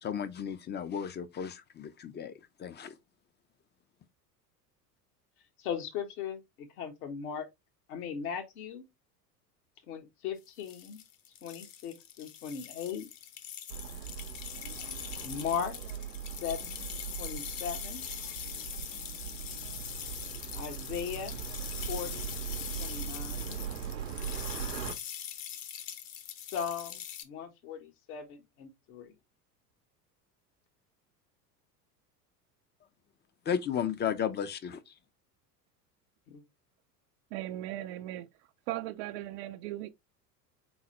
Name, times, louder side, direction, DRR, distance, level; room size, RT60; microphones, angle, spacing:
voice 1, 0.0-2.9 33.5-34.9, left 8 dB, 20° left, 0.6 m, -34 dB
voice 2, 5.6-7.5 7.9-8.8 9.9-11.0 11.4-13.1 15.2-15.7 16.4-16.8 17.2-18.0 20.5-21.4 21.9-22.4 22.8-23.6 26.5-29.1 36.3-36.4, left 7 dB, 65° left, 1.4 m, -38 dB
sound 1, 10.5-27.2, left 10 dB, 45° left, 1.0 m, -42 dB
sound 2, 13.7-24.9, right 9 dB, 85° right, 0.8 m, -40 dB
voice 3, 37.3-38.3 38.7-39.9, right 14 dB, 50° right, 0.5 m, -37 dB
4.0 x 3.9 x 3.0 m
figure-of-eight pair, 80°, 49 cm